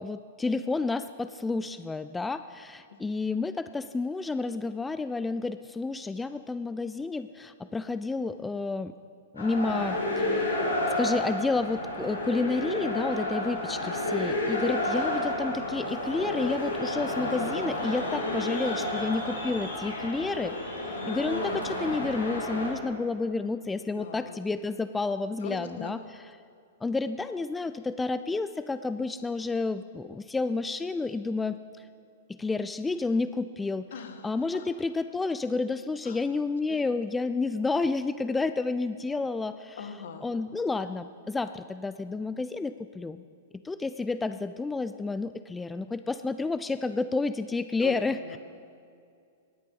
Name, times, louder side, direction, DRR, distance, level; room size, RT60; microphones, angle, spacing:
voice 1, 0.0-8.9 9.3-10.5 11.0-20.6 20.8-26.0 26.8-31.6 32.3-33.9 34.2-39.9 40.2-43.2 43.6-48.4, left 3 dB, 10° left, 12 dB, 0.3 m, -30 dB
sound 1, 9.4-22.7, left 1 dB, 85° left, 3.8 m, -31 dB
voice 2, 21.0-21.6 23.9-24.4 25.4-25.9 33.9-34.7 36.0-36.2 36.7-37.0 39.8-40.3 47.8-48.4, left 6 dB, 65° left, 8 dB, 1.3 m, -42 dB
18.0 x 10.0 x 3.9 m, 2.3 s
figure-of-eight pair, 105°, 0 cm